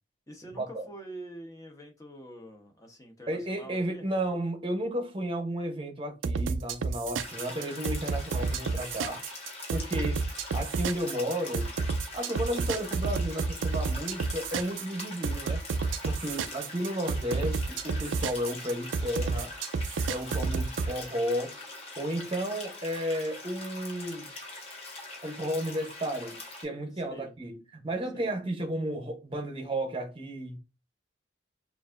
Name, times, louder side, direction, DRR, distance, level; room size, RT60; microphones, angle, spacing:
voice 1, 0.3-4.1 16.1-16.5 26.9-27.3 28.1-28.3, right 1 dB, 20° left, 0.9 m, -46 dB
voice 2, 3.3-9.2 9.7-10.2 10.5-11.7 12.1-15.6 16.0-19.5 20.1-21.5 22.0-24.3 25.2-30.6, right 1 dB, 30° right, 0.8 m, -33 dB
sound 1, 6.2-20.9, right 4 dB, 90° right, 0.4 m, -30 dB
sound 2, 7.2-26.6, left 2 dB, 35° left, 1.5 m, -43 dB
6.7 x 2.6 x 2.5 m
head